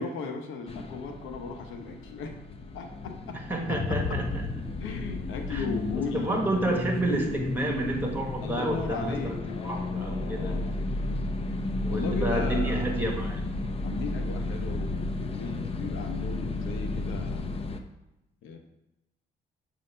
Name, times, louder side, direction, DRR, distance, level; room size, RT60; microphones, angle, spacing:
voice 1, 0.0-2.4 2.7-3.4 3.7-4.2 4.8-6.8 8.4-10.8 11.9-13.1 13.8-17.5 18.4-18.6, left 4 dB, 90° left, 4 dB, 0.9 m, -37 dB
sound 1, 0.7-17.8, left 2 dB, 30° left, 0.6 m, -33 dB
voice 2, 3.5-4.2 5.5-5.6 6.1-9.4 9.6-10.5 11.8-13.4, right 1 dB, 10° right, 0 dB, 1.4 m, -30 dB
6.4 x 2.7 x 5.4 m, 0.93 s
cardioid pair, 90°, 20 cm